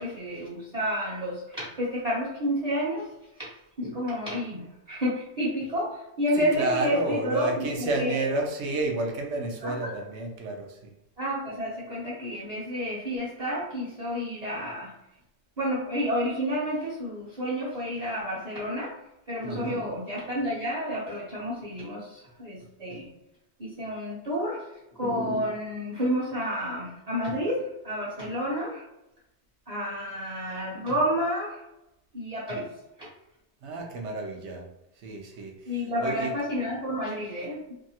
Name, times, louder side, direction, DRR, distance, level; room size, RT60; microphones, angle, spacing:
voice 1, 0.0-3.1 3.4-3.5 3.8-8.2 9.6-9.9 11.2-14.9 15.6-18.9 19.3-23.1 23.6-24.6 25.0-28.8 29.7-31.6 32.1-32.7 33.0-33.1 35.7-37.6, equal, 40° right, -8 dB, 0.7 m, -30 dB
voice 2, 6.4-10.9 19.4-19.8 33.6-34.7 35.0-36.4, right 2 dB, 85° right, 1 dB, 0.9 m, -31 dB
2.7 x 2.3 x 2.7 m, 0.90 s
omnidirectional pair, 1.1 m